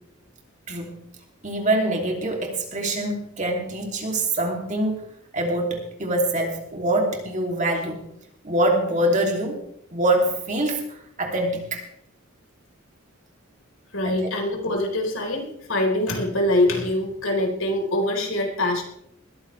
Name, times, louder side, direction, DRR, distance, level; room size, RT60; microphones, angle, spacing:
voice 1, 0.7-1.1 1.4-4.9 5.3-8.0 8.4-9.6 9.9-11.8 14.0-14.2, right 1 dB, 35° right, 1 dB, 2.9 m, -24 dB
voice 2, 13.9-18.8, left 1 dB, 70° left, 1 dB, 4.3 m, -24 dB
21.0 x 14.5 x 3.4 m, 0.74 s
head